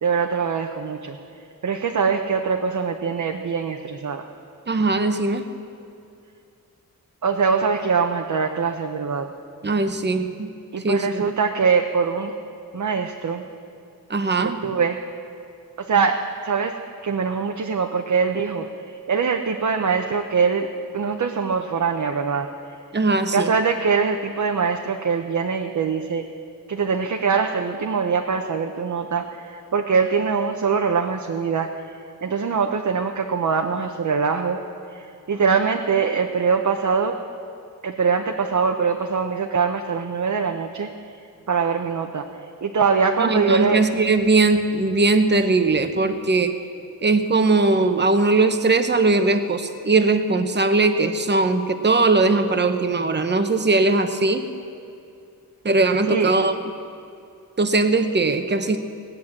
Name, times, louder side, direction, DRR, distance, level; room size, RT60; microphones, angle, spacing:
voice 1, 0.0-1.2 1.6-4.2 7.2-9.3 10.7-12.3 12.7-13.4 14.6-15.0 15.8-20.7 20.9-22.5 23.3-26.3 26.7-31.8 32.2-34.6 34.9-37.1 37.8-40.9 41.5-42.3 42.6-43.8 56.1-56.3, right 5 dB, 55° right, 4 dB, 0.9 m, -23 dB
voice 2, 4.7-5.5 9.6-10.5 10.8-11.2 14.1-14.6 22.9-23.5 43.2-46.6 47.0-54.5 55.6-56.5 57.6-58.8, right 3 dB, 30° right, 8 dB, 0.9 m, -20 dB
18.5 x 9.3 x 7.4 m, 2.5 s
wide cardioid pair, 115°, 36 cm